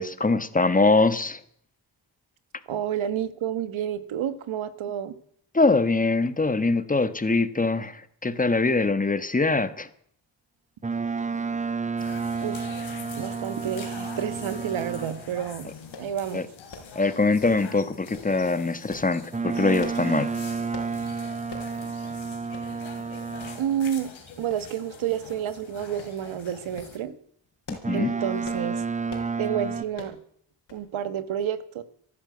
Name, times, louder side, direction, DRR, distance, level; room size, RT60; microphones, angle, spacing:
voice 1, 0.0-1.4 5.5-9.9 16.3-16.4 16.9-20.3 27.7-28.1, left 3 dB, 15° left, 13 dB, 1.4 m, -23 dB
voice 2, 2.7-5.1 12.4-12.7 13.1-15.7 16.0-16.5 23.6-24.1 24.4-27.1 27.9-28.8 29.4-30.2 30.7-31.8, right 9 dB, 85° right, 13 dB, 1.4 m, -30 dB
Boat Water vehicle, 10.8-15.4 19.3-23.9 27.8-29.8, right 5 dB, 15° right, 0.7 m, -31 dB
sound 1, 12.0-27.0, left 6 dB, 90° left, 3.3 m, -45 dB
sound 2, 15.9-16.1 16.7-16.9 17.4-17.7 18.1-18.3 18.9-19.1 19.8-20.0 20.7-20.9 21.5-21.7 22.1-22.2 22.5-22.7 23.4-23.5 24.5-24.9 25.2-25.4 26.0-26.2 26.6-26.9 27.4-28.0 28.4-28.7 29.1-29.3 29.9-30.2 30.7-30.9 31.2-31.3, left 4 dB, 65° left, 4.4 m, -43 dB
15.0 x 11.5 x 7.9 m, 0.65 s
cardioid pair, 70°, 46 cm